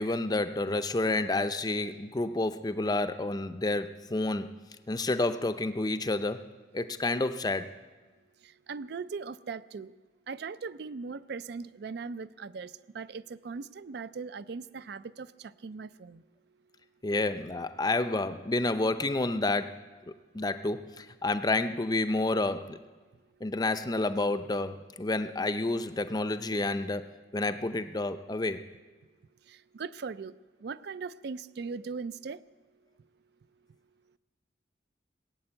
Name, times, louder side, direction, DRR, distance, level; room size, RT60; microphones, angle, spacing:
voice 1, 0.0-4.5 4.9-6.4 6.7-7.7 17.0-19.8 20.1-22.8 23.4-27.1 27.3-28.6, left 2 dB, 20° left, 11 dB, 0.5 m, -29 dB
voice 2, 8.7-9.9 10.3-15.3 15.6-16.2 29.7-30.3 30.6-32.4, right 5 dB, 55° right, 16 dB, 0.4 m, -39 dB
20.0 x 7.7 x 8.8 m, 1.4 s
head